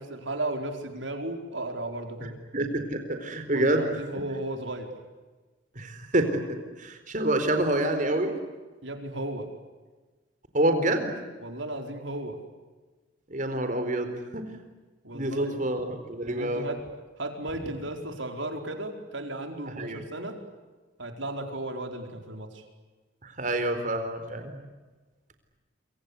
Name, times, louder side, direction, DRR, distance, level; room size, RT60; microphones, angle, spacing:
voice 1, 0.0-2.4 3.5-4.9 8.8-9.5 11.4-12.4 15.0-15.6 16.2-16.8 17.2-20.4 21.0-22.6, right 1 dB, 70° right, 5 dB, 4.7 m, -35 dB
voice 2, 2.5-4.0 5.7-8.4 10.5-11.1 13.3-14.6 15.1-16.7 19.7-20.0 23.2-24.6, right 1 dB, 40° right, 7 dB, 4.2 m, -27 dB
27.5 x 25.0 x 8.4 m, 1.3 s
head